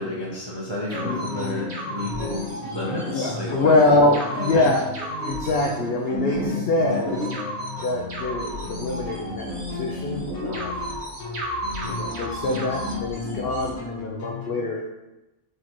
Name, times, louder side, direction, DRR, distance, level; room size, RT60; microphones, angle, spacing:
voice 1, 0.0-3.7 4.2-4.7, left 1 dB, 45° right, -5 dB, 0.3 m, -31 dB
sound 1, 0.9-14.6, left 2 dB, 55° left, 1.6 m, -35 dB
sound 2, 0.9-13.7, equal, 85° right, 1.9 m, -33 dB
voice 2, 3.0-4.8 5.2-7.2 7.8-10.7 11.9-14.8, left 2 dB, 85° left, 0 dB, 0.5 m, -24 dB
4.9 x 2.7 x 3.0 m, 1.0 s
omnidirectional pair, 1.6 m